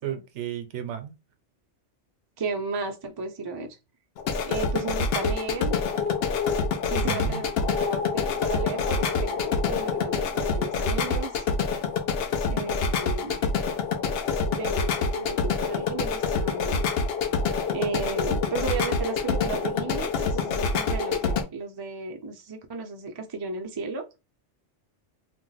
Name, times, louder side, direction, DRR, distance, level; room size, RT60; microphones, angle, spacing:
voice 1, 0.0-1.1 7.0-7.4, right 9 dB, 75° right, 0.9 m, -33 dB
voice 2, 2.4-3.8 4.4-5.8 6.7-11.4 12.5-13.4 14.6-16.8 17.7-24.0, right 4 dB, 40° right, 0.3 m, -34 dB
sound 1, 4.2-21.4, left 5 dB, 65° left, 0.7 m, -26 dB
2.6 x 2.1 x 3.9 m
omnidirectional pair, 1.2 m